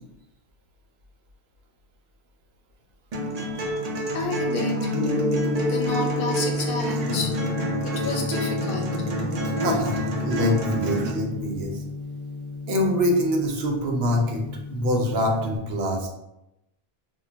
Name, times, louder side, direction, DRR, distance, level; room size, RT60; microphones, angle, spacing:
sound 1, 3.1-11.1, equal, 50° right, 0.5 m, -28 dB
voice 1, 3.4-3.8 4.1-4.9 5.6-9.0, left 3 dB, 65° left, 1 dB, 0.7 m, -31 dB
Gong, 4.9-15.6, left 2 dB, 35° left, 0.4 m, -31 dB
voice 2, 9.4-11.8 12.7-16.1, left 1 dB, 85° right, 1 dB, 0.8 m, -25 dB
2.2 x 2.2 x 3.7 m, 0.88 s
omnidirectional pair, 1.0 m